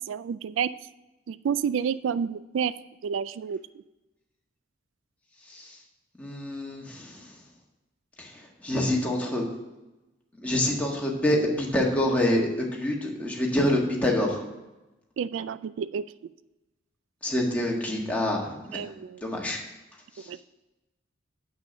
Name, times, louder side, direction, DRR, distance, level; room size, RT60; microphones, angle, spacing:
voice 1, 0.1-0.7 1.3-2.7 3.0-3.6 15.2-16.0 18.7-19.2 20.3-20.4, right 7 dB, 90° right, 16 dB, 0.3 m, -29 dB
voice 2, 6.2-7.2 8.2-9.4 10.4-14.4 17.2-18.8 19.2-19.6 20.2-20.3, left 1 dB, 10° left, -2 dB, 1.6 m, -26 dB
7.4 x 6.1 x 6.6 m, 1.0 s
head